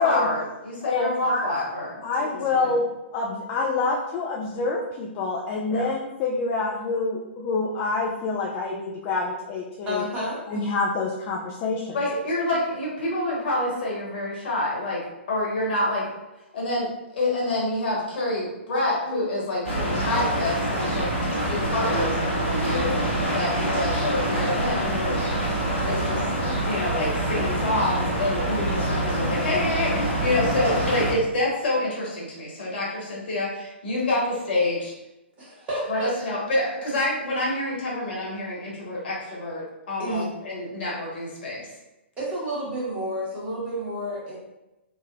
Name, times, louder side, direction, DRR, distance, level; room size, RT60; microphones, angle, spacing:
voice 1, 0.0-2.0 2.6-2.8 5.7-5.9 11.9-16.1 16.5-21.1 21.4-23.0 23.3-25.2 25.8-26.2 26.6-34.9 35.9-41.7, left 1 dB, 60° left, -5 dB, 1.2 m, -27 dB
voice 2, 0.8-1.4 2.0-2.9 3.1-10.0 10.5-12.0, left 3 dB, 30° left, -1 dB, 0.3 m, -26 dB
voice 3, 9.8-10.6 35.4-36.1 40.0-40.2 42.2-44.4, equal, 20° right, -6 dB, 1.2 m, -30 dB
sound 1, 19.6-31.1, right 1 dB, 90° left, 1.2 m, -25 dB
3.3 x 2.1 x 2.5 m, 0.96 s
figure-of-eight pair, 120°, 6 cm